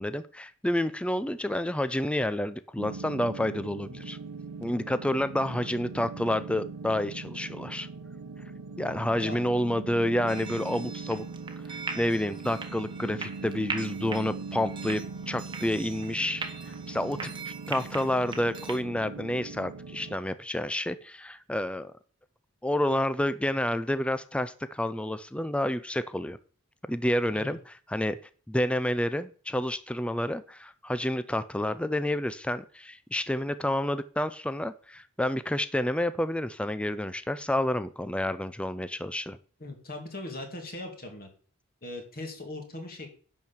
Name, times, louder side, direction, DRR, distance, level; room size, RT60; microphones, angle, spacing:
voice 1, 0.0-4.2 4.6-7.9 8.8-11.2 11.7-21.9 22.6-26.4 26.9-28.2 28.5-39.4, left 1 dB, 5° left, 13 dB, 0.4 m, -29 dB
sound 1, 2.8-20.2, right 4 dB, 85° right, 1.1 m, -41 dB
sound 2, 10.3-18.8, right 4 dB, 20° right, 1.3 m, -41 dB
voice 2, 39.6-41.3 41.8-43.2, left 2 dB, 45° left, 3 dB, 2.6 m, -39 dB
10.5 x 4.6 x 7.1 m, 0.43 s
head